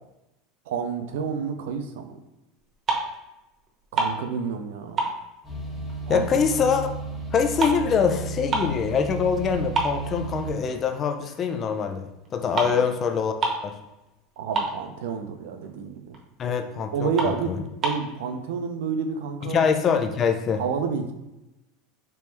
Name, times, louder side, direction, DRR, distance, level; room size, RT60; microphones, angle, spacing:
voice 1, 0.7-2.2 3.9-5.0 6.1-6.3 12.5-12.8 14.4-16.2 16.9-17.6 17.8-19.6 20.6-21.1, right 6 dB, 75° right, 7 dB, 0.5 m, -29 dB
sound 1, 2.6-3.3 3.6-4.7 5.0-6.5 6.8-8.9 9.3-9.4 9.7-10.8 11.2-11.4 12.3-12.4 12.6-12.8 13.1-13.2 13.4-13.8 14.1-14.2 14.4-15.2 15.6-15.7 16.1-16.2 16.7-16.8 17.1-18.1, right 3 dB, 35° right, 0.9 m, -28 dB
sound 2, 5.4-10.5, right 2 dB, 20° left, 1.2 m, -34 dB
voice 2, 6.1-6.9 7.3-13.3 13.6-13.7 16.4-17.6 19.4-20.6, left 6 dB, 40° left, 6 dB, 0.4 m, -24 dB
3.4 x 3.0 x 3.1 m, 0.97 s
hypercardioid pair, 90°, 0 cm